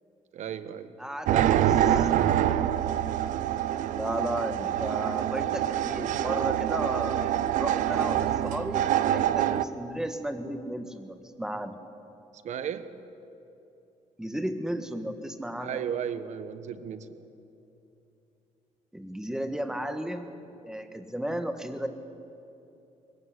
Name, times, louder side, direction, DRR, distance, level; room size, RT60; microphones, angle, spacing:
voice 1, 0.3-1.0 1.3-2.3 12.4-13.0 15.6-17.3, right 8 dB, 65° right, 12 dB, 1.2 m, -35 dB
voice 2, 1.0-1.6 2.0-2.1 3.9-11.8 14.2-15.8 18.9-20.3 20.6-21.9, equal, 5° right, 8 dB, 1.6 m, -34 dB
sound 1, 1.3-9.6, right 11 dB, 80° right, 0.7 m, -26 dB
21.0 x 15.5 x 9.9 m, 2.9 s
cardioid pair, 100°, 13 cm